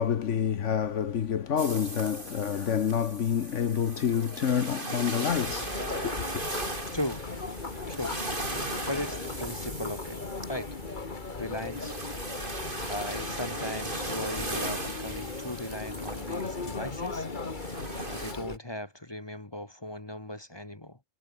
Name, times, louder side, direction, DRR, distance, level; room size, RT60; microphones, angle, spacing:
voice 1, 0.0-6.4, left 8 dB, 65° left, 1.3 m, -28 dB
sound 1, 1.6-18.3, right 2 dB, 40° right, 4.8 m, -38 dB
Chatter, 5.3-18.6, left 3 dB, 35° left, 2.0 m, -37 dB
voice 2, 6.9-7.2 7.9-8.1 8.9-10.2 10.5-10.7 11.4-11.9 12.9-17.3 18.1-21.0, left 1 dB, 20° left, 1.5 m, -37 dB
omnidirectional pair, 1.4 m